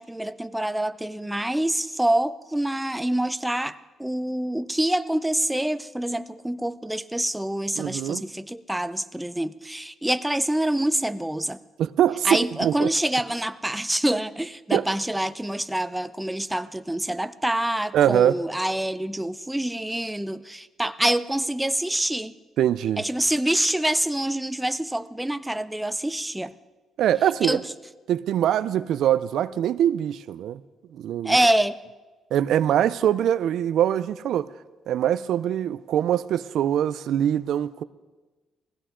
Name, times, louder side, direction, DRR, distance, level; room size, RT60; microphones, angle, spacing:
voice 1, 0.0-11.6 12.2-22.3 23.0-26.5 27.4-27.6 31.2-31.8, right 1 dB, 5° right, 0.5 m, -26 dB
voice 2, 7.8-8.2 11.8-12.9 14.7-14.8 17.9-18.3 22.6-23.0 27.0-27.6 28.1-30.6 30.9-31.4 32.3-34.5 34.9-37.8, right 10 dB, 75° right, 0.4 m, -23 dB
20.0 x 16.0 x 3.7 m
cardioid pair, 90°, 0 cm